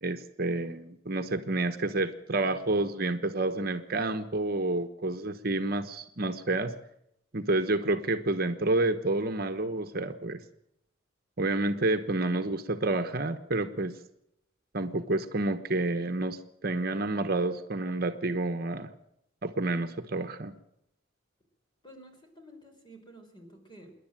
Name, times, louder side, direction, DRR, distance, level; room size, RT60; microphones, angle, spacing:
voice 1, 0.0-6.7 7.3-10.4 11.4-14.0 14.7-18.9 19.4-20.5, right 2 dB, 50° right, 7 dB, 1.1 m, -29 dB
voice 2, 21.8-23.9, right 1 dB, 25° left, 4 dB, 4.5 m, -51 dB
26.5 x 11.0 x 9.0 m, 0.78 s
head